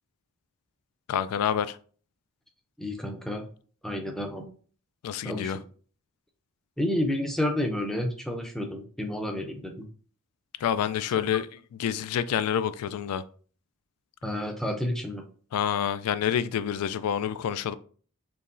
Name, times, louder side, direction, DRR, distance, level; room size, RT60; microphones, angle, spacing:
voice 1, 1.1-1.8 5.0-5.6 10.6-13.2 15.5-17.7, left 9 dB, 90° left, 0.3 m, -28 dB
voice 2, 2.8-3.5 3.8-4.5 5.2-5.5 6.8-9.9 14.2-15.2, left 1 dB, ahead, 0.5 m, -30 dB
4.5 x 3.0 x 2.6 m
head